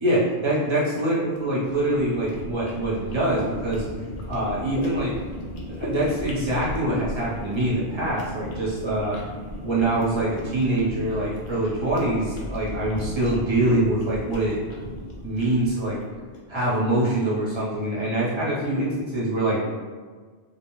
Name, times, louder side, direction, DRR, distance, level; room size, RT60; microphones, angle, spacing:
voice 1, 0.0-3.8 4.3-5.1 5.7-9.2 9.6-14.6 15.2-16.0 16.5-19.6, right 1 dB, 30° right, -7 dB, 0.7 m, -24 dB
sound 1, 1.3-16.5, left 1 dB, 60° left, 0.6 m, -36 dB
2.4 x 2.1 x 3.0 m, 1.5 s
omnidirectional pair, 1.1 m